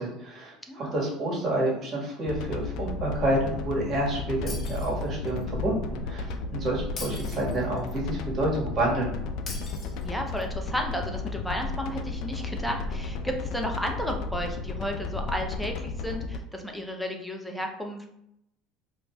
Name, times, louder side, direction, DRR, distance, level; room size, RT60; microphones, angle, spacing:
voice 1, 0.0-9.2, right 1 dB, 35° right, -4 dB, 1.5 m, -29 dB
voice 2, 0.7-1.0 10.0-18.1, equal, 5° left, 2 dB, 0.6 m, -33 dB
sound 1, 2.3-16.4, left 3 dB, 65° left, 0.4 m, -34 dB
Shatter, 4.5-5.4 7.0-8.0 9.5-10.5, left 3 dB, 35° left, 0.8 m, -41 dB
4.5 x 2.6 x 2.3 m, 0.79 s
supercardioid pair, 110°, 0 cm